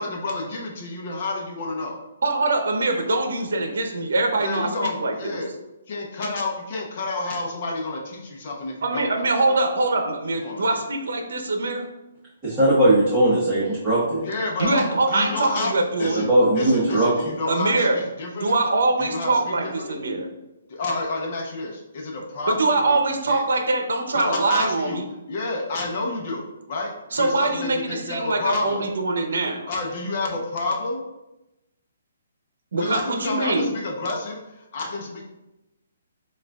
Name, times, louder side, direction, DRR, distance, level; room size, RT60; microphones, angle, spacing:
voice 1, 0.0-2.0 4.4-5.5 5.9-9.6 10.4-10.8 14.2-16.3 16.5-18.6 19.0-20.0 20.7-23.0 23.3-23.4 24.1-25.0 25.3-28.8 29.7-31.0 32.8-35.2, left 2 dB, 40° left, 0 dB, 0.8 m, -29 dB
voice 2, 2.2-5.1 8.8-11.9 14.6-16.2 17.5-18.0 18.4-20.3 22.5-25.0 27.1-29.7 32.7-33.7, right 2 dB, 75° right, 4 dB, 0.7 m, -23 dB
voice 3, 12.4-14.3 16.1-17.3, right 1 dB, 10° right, -11 dB, 1.1 m, -19 dB
7.3 x 2.5 x 2.3 m, 0.96 s
hypercardioid pair, 165°, 0 cm